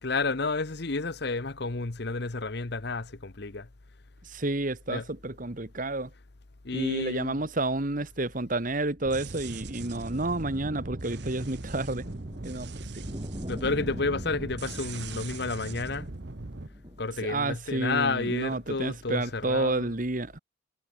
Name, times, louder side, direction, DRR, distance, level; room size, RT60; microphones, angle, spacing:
voice 1, 0.0-3.7 4.9-5.0 6.6-7.4 13.5-16.1 17.0-19.9, left 3 dB, 60° left, 1.1 m, -31 dB
voice 2, 4.2-6.1 6.7-12.0 12.4-13.1 17.2-20.4, right 2 dB, 45° right, 1.6 m, -30 dB
sound 1, 9.0-17.3, equal, 25° right, 5.5 m, -43 dB
sound 2, 9.0-16.7, right 3 dB, 60° right, 1.1 m, -40 dB
head